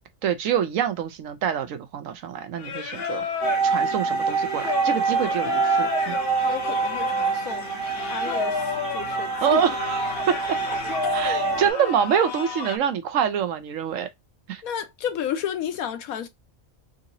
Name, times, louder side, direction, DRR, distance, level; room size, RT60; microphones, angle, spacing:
voice 1, 0.2-3.2 3.6-6.2 9.4-10.6 11.1-14.1 14.5-14.6, right 8 dB, 70° right, 1.0 m, -26 dB
Singing, 2.6-12.8, left 6 dB, 55° left, 0.7 m, -32 dB
sound 1, 3.4-11.7, right 5 dB, 40° right, 1.4 m, -26 dB
voice 2, 6.4-7.8 8.1-9.6 11.0-11.9 14.6-16.3, left 9 dB, 75° left, 1.1 m, -32 dB
3.9 x 2.7 x 2.5 m
omnidirectional pair, 1.5 m